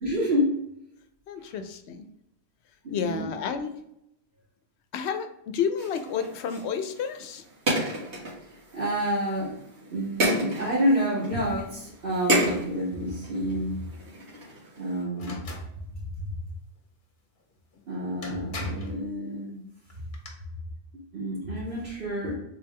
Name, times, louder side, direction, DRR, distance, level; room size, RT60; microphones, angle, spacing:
voice 1, 0.0-0.5 2.8-3.3 8.7-9.5 9.9-13.8 14.8-15.4 17.9-19.6 20.9-22.4, equal, 60° right, -11 dB, 2.0 m, -28 dB
voice 2, 1.3-2.0 2.9-3.8 4.9-7.4, left 7 dB, 85° left, 8 dB, 0.8 m, -31 dB
sound 1, 5.8-15.0, right 1 dB, 80° right, 1.7 m, -32 dB
sound 2, 15.2-15.7 17.7-17.8 18.2-19.0 19.9-20.3, left 3 dB, 50° left, 1.0 m, -40 dB
3.6 x 3.4 x 3.2 m, 0.80 s
omnidirectional pair, 1.1 m